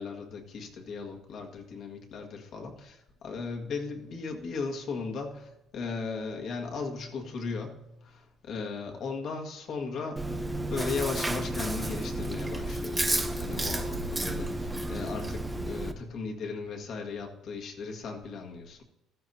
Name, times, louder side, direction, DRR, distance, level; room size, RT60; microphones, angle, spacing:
voice 1, 0.0-10.4 10.7-18.8, left 4 dB, 45° left, 1 dB, 1.8 m, -37 dB
Chewing mastication, 10.2-15.9, right 1 dB, 10° right, 0.8 m, -32 dB
15.0 x 14.0 x 2.8 m, 0.91 s
cardioid pair, 160°, 0 cm